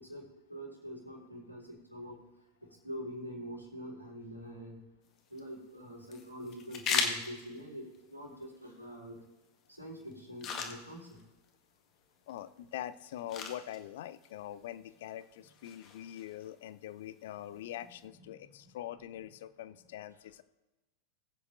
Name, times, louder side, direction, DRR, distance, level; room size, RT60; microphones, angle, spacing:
voice 1, 0.0-2.2 2.6-4.8 5.3-9.2 9.7-11.2 18.2-18.3, equal, 90° right, -3 dB, 3.7 m, -45 dB
sound 1, 5.0-18.0, left 6 dB, 35° left, 1.7 m, -42 dB
voice 2, 12.3-20.4, left 12 dB, 55° left, 15 dB, 0.5 m, -43 dB
21.0 x 8.7 x 2.6 m, 1.1 s
figure-of-eight pair, 90°, 0 cm